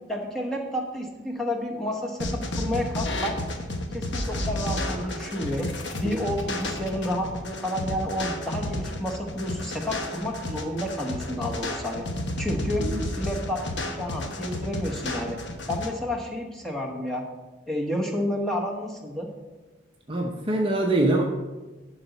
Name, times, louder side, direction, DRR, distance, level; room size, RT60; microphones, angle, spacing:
voice 1, 0.1-3.4 3.9-5.7 6.0-12.1 12.4-12.9 13.2-15.4 15.7-17.2 17.7-19.3, left 1 dB, ahead, 0 dB, 1.1 m, -30 dB
sound 1, 2.2-15.9, left 1 dB, 60° left, 1.1 m, -32 dB
voice 2, 20.1-21.2, right 2 dB, 25° right, 1 dB, 0.7 m, -24 dB
12.0 x 4.0 x 7.0 m, 1.2 s
head